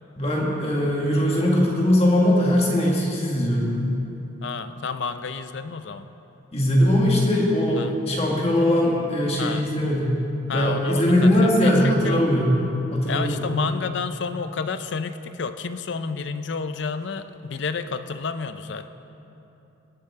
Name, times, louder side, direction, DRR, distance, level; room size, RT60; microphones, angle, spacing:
voice 1, 0.2-3.9 6.5-10.2 10.5-12.5 12.9-13.4, left 1 dB, 30° left, -3 dB, 1.8 m, -20 dB
voice 2, 4.4-6.1 7.7-7.9 9.4-9.7 10.5-12.2 13.1-18.9, left 5 dB, 65° left, 10 dB, 0.5 m, -30 dB
19.0 x 8.6 x 3.6 m, 2.9 s
head